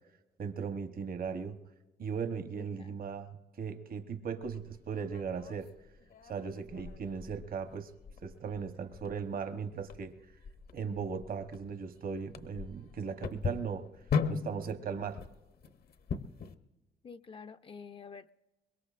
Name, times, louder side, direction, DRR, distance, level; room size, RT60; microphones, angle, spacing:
voice 1, 0.4-1.6 2.0-5.7 6.2-7.9 8.2-10.1 10.7-13.9 14.3-15.2, right 6 dB, 60° right, 8 dB, 1.0 m, -38 dB
voice 2, 2.5-3.0 17.0-18.3, left 5 dB, 30° left, 10 dB, 0.4 m, -48 dB
sound 1, 4.4-16.5, left 6 dB, 65° left, 0.9 m, -40 dB
23.5 x 21.5 x 2.5 m, 1.1 s
cardioid pair, 95°, 17 cm